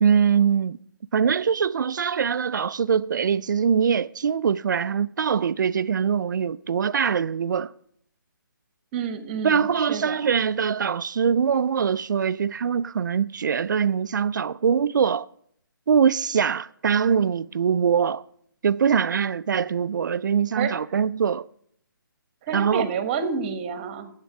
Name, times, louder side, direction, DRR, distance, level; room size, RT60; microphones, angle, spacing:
voice 1, 0.0-0.8 1.1-7.7 9.4-15.3 15.9-18.2 18.6-21.5 22.5-22.9, right 7 dB, 60° right, 0.4 m, -23 dB
voice 2, 8.9-10.2 20.5-20.7 22.4-24.1, right 6 dB, 25° right, 1.1 m, -29 dB
10.0 x 8.2 x 7.4 m
figure-of-eight pair, 150°, 12 cm